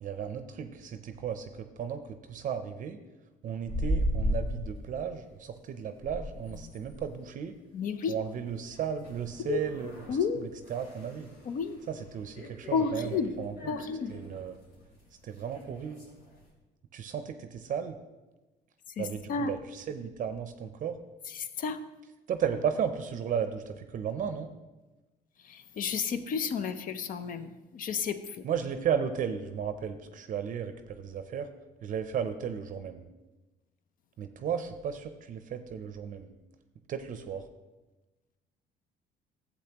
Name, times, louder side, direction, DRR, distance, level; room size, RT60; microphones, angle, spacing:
voice 1, 0.0-3.0 3.4-7.5 8.1-11.3 11.9-13.7 14.1-14.6 15.2-16.1 16.9-18.0 19.0-21.0 22.3-24.5 28.4-31.5 31.8-33.0 34.2-36.3 36.9-37.4, right 7 dB, 50° right, 9 dB, 0.6 m, -34 dB
sound 1, 3.7-4.7 5.2-5.4 5.7-16.4, equal, 85° left, 3.0 m, -37 dB
voice 2, 7.7-8.1 9.4-9.6 10.1-10.4 11.4-11.8 12.7-14.1 19.0-19.5 21.3-21.8 25.4-28.4, left 6 dB, 55° left, 11 dB, 0.6 m, -32 dB
12.0 x 7.8 x 3.0 m, 1.1 s
cardioid pair, 110°, 17 cm